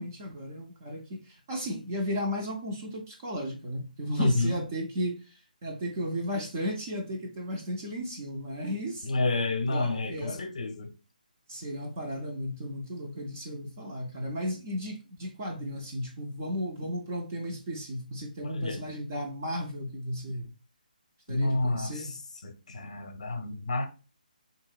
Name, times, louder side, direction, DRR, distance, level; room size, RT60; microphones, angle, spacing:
voice 1, 0.0-9.1 9.7-10.5 11.5-20.5 21.3-22.1, equal, 15° right, 0.3 m, -34 dB
voice 2, 4.2-4.6 9.0-10.9 18.4-18.8 21.3-22.2 22.4-23.9, left 2 dB, 45° left, 0.6 m, -29 dB
3.4 x 2.8 x 2.3 m
hypercardioid pair, 175°, 5 cm